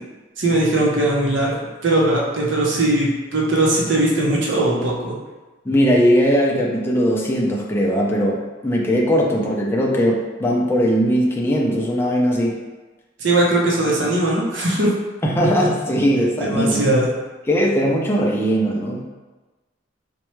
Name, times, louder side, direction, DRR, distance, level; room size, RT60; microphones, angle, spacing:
voice 1, 0.4-1.6 1.8-5.2 13.2-14.9 16.4-17.1, right 1 dB, 75° right, -3 dB, 0.7 m, -19 dB
voice 2, 5.7-12.5 15.2-16.8 17.5-19.1, equal, 10° left, -3 dB, 0.4 m, -19 dB
4.2 x 2.3 x 3.0 m, 1.2 s
head